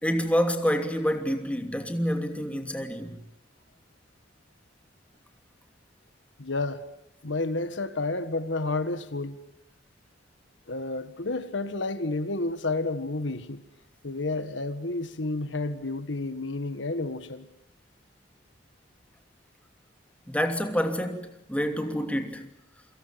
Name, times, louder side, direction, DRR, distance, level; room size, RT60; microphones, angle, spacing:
voice 1, 0.0-3.2 20.3-22.5, equal, 5° left, 2.8 m, -27 dB
voice 2, 6.4-6.8 7.2-9.4 10.7-13.6 14.0-17.5, left 2 dB, 80° left, 1.7 m, -30 dB
28.0 x 25.0 x 7.6 m
head